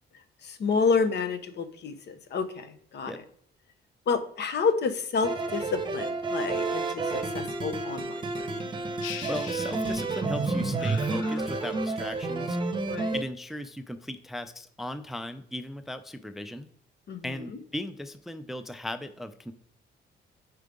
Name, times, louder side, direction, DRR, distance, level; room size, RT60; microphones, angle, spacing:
voice 1, 0.4-3.1 4.1-7.0 7.3-8.6 12.8-13.2 17.1-17.2, left 5 dB, 60° left, 10 dB, 0.8 m, -29 dB
sound 1, 5.2-13.3, right 3 dB, 25° right, 0.9 m, -30 dB
sound 2, 9.0-10.3 10.8-12.0, left 11 dB, 90° left, 0.5 m, -42 dB
voice 2, 9.3-12.6 13.1-16.7 17.2-19.5, left 1 dB, ahead, 10 dB, 0.4 m, -37 dB
4.9 x 4.6 x 5.1 m, 0.65 s
cardioid pair, 90°, 20 cm